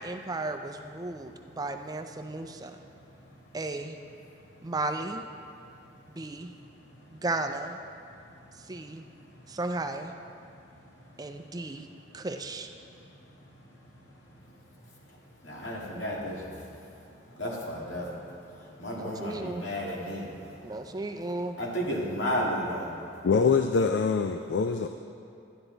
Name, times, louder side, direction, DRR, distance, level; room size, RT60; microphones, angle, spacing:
voice 1, 0.0-2.8 3.5-4.0 4.6-5.2 6.1-6.5 7.1-7.8 8.6-9.0 9.5-10.1 11.2-11.9 12.1-12.7 19.0-19.7 20.6-21.6, right 2 dB, 20° right, 6 dB, 0.5 m, -34 dB
voice 2, 15.4-20.8 21.6-23.0, equal, 90° left, -3 dB, 2.2 m, -34 dB
voice 3, 23.2-24.9, left 5 dB, 65° left, 7 dB, 0.4 m, -24 dB
11.0 x 11.0 x 4.0 m, 2.7 s
head